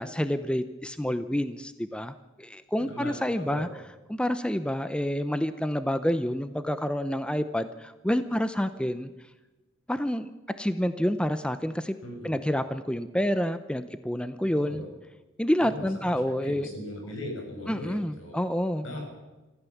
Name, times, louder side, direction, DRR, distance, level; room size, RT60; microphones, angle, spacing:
voice 1, 0.0-3.7 4.1-9.1 9.9-10.3 10.6-12.0 12.2-14.8 15.4-16.7 17.7-18.9, equal, 5° left, 11 dB, 0.7 m, -28 dB
voice 2, 2.9-3.7 12.0-12.3 14.5-14.9 15.6-16.2 16.4-18.4 18.8-19.2, left 1 dB, 75° left, 1 dB, 7.4 m, -39 dB
25.5 x 15.0 x 7.2 m, 1.1 s
head